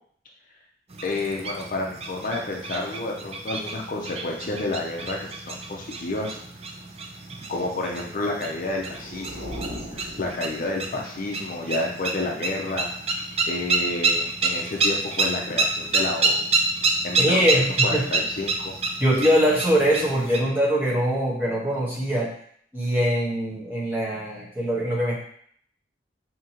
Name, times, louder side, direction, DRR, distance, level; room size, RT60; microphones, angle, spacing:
sound 1, 0.9-20.4, right 3 dB, 35° right, 0.5 m, -28 dB
voice 1, 1.0-6.4 7.5-9.5 9.9-12.9 13.5-16.5 17.0-18.7, left 2 dB, 50° left, 0 dB, 0.6 m, -30 dB
sound 2, 8.5-11.1, equal, 85° right, 1.5 m, -39 dB
voice 2, 17.2-18.0 19.0-22.3 22.7-25.2, equal, 10° right, -7 dB, 1.2 m, -22 dB
4.9 x 2.9 x 2.9 m, 0.63 s
head